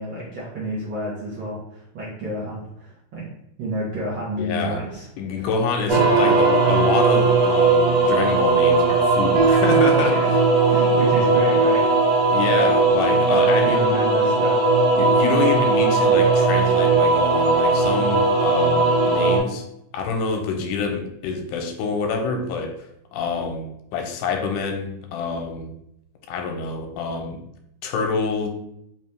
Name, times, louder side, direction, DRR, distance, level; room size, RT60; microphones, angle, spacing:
voice 1, 0.0-3.3 3.6-5.1 5.4-5.5 10.0-10.3 10.7-11.9 13.3-14.6, right 1 dB, 70° right, -6 dB, 1.1 m, -30 dB
voice 2, 4.4-4.8 5.2-10.2 12.3-14.0 15.0-19.6 19.9-25.7 26.3-27.4 27.8-28.5, left 5 dB, 85° left, 3 dB, 2.1 m, -26 dB
sound 1, 5.9-19.4, right 3 dB, 55° right, 2.5 m, -18 dB
5.1 x 2.8 x 3.3 m, 0.77 s
omnidirectional pair, 3.7 m